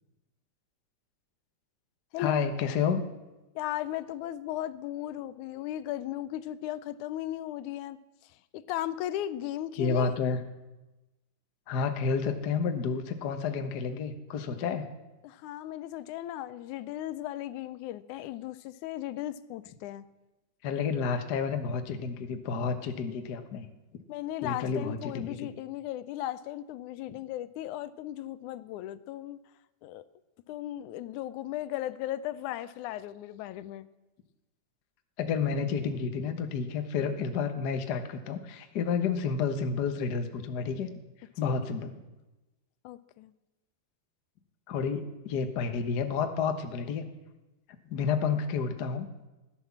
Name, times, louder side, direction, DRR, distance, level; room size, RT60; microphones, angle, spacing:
voice 1, 2.2-3.0 9.8-10.4 11.7-14.8 20.6-23.6 24.4-25.5 35.2-40.9 41.4-41.9 44.7-47.0 47.9-49.1, left 5 dB, 65° left, 7 dB, 0.9 m, -30 dB
voice 2, 3.6-8.0 8.5-10.2 15.2-20.1 24.1-29.4 29.8-30.0 30.5-33.9 41.4-41.5 42.8-43.3, left 13 dB, 80° left, 15 dB, 2.0 m, -36 dB
15.5 x 11.0 x 7.2 m, 1.0 s
omnidirectional pair, 3.5 m